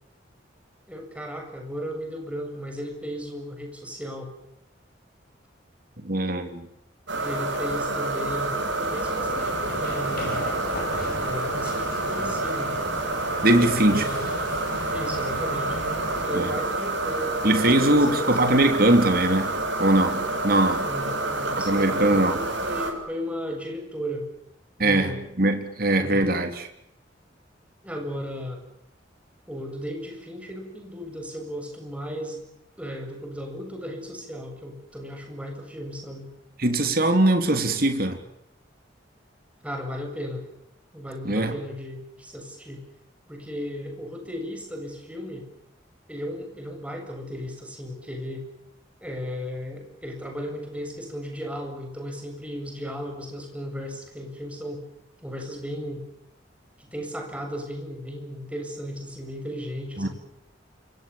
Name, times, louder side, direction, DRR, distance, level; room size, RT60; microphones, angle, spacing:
voice 1, 0.9-4.3 7.2-10.6 11.2-12.7 13.6-14.3 14.9-15.8 16.2-18.7 20.8-24.3 24.8-25.2 25.9-26.4 27.8-28.6 29.5-32.4 32.8-36.3 39.6-40.4 40.9-42.8 43.3-45.5 46.1-48.5 49.0-54.8 55.2-56.0 56.8-60.1, equal, 5° right, 3 dB, 7.5 m, -35 dB
voice 2, 6.0-6.7 13.4-14.0 16.3-16.5 17.4-19.5 19.8-20.9 21.7-22.4 24.8-25.1 25.4-26.7 36.6-38.2 41.2-41.5 60.0-60.1, right 1 dB, 50° right, 6 dB, 3.6 m, -21 dB
sound 1, 7.1-22.9, right 2 dB, 75° right, 7.4 m, -28 dB
sound 2, 8.3-16.3, left 2 dB, 50° left, 6.4 m, -36 dB
28.0 x 26.5 x 7.2 m, 0.79 s
head